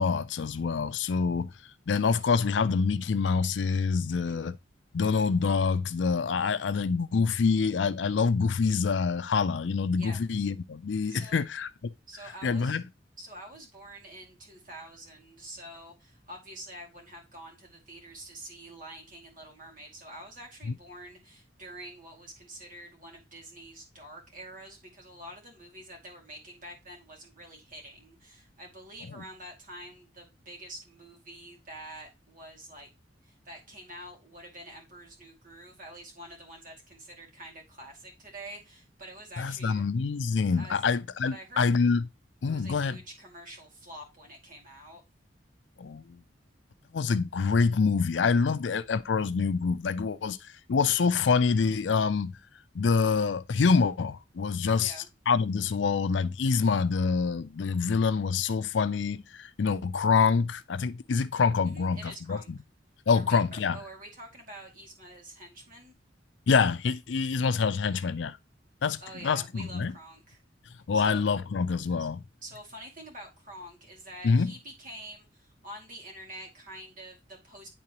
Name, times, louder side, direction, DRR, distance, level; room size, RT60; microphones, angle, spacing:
voice 1, 0.0-1.5 1.9-4.5 4.9-11.9 12.4-12.8 20.7-20.8 29.2-29.3 39.4-42.0 42.4-43.0 45.8-46.2 46.9-52.4 52.7-54.9 55.3-62.6 63.1-63.8 66.5-68.4 68.8-69.9 70.9-72.2 74.2-74.5, left 5 dB, 70° left, 0.5 m, -26 dB
voice 2, 4.1-4.4 10.0-10.2 11.1-11.4 12.1-12.8 13.2-32.9 33.2-39.8 40.6-40.8 41.3-41.7 42.5-45.0 54.7-55.1 61.7-62.5 63.1-65.9 69.0-70.4 70.9-71.2 72.0-72.1 72.4-77.7, right 1 dB, 50° right, 2.4 m, -47 dB
10.0 x 3.8 x 3.0 m
head